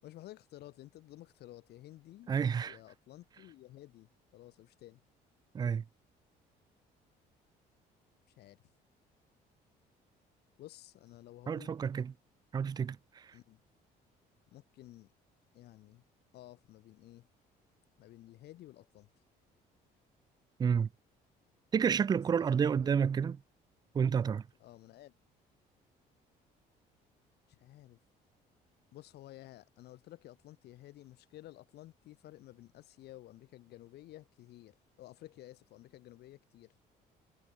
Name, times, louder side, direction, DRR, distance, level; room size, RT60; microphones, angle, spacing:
voice 1, 0.0-2.3 2.6-5.0 8.4-8.6 10.6-11.8 13.3-13.6 14.5-15.1 15.5-16.0 16.3-17.3 18.0-19.1 22.4-22.5 22.8-22.9 24.6-25.1 27.5-28.0 28.9-36.8, left 15 dB, 75° left, 7.7 m, -53 dB
voice 2, 2.3-2.8 5.5-5.8 11.5-12.1 12.5-13.3 20.6-20.9 21.7-23.4 23.9-24.5, right 7 dB, 25° right, 0.3 m, -30 dB
cardioid pair, 110°, 17 cm